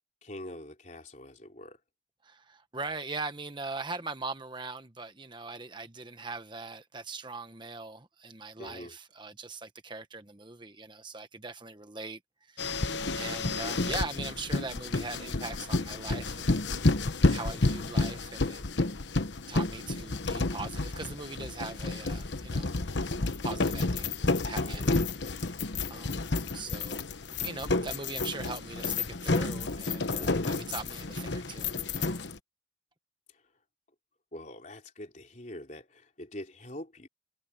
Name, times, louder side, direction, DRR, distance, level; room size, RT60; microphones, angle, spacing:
voice 1, 0.2-1.8 8.6-9.0 24.6-25.0 30.2-30.5 34.3-37.1, left 1 dB, 40° left, 3.5 m, -44 dB
voice 2, 2.2-12.2 12.5-16.6 17.3-18.6 19.5-22.7 23.4-26.2 26.5-27.1 27.4-32.2, right 3 dB, 25° right, 1.1 m, -41 dB
sound 1, 12.6-32.4, left 3 dB, 75° left, 1.1 m, -30 dB
head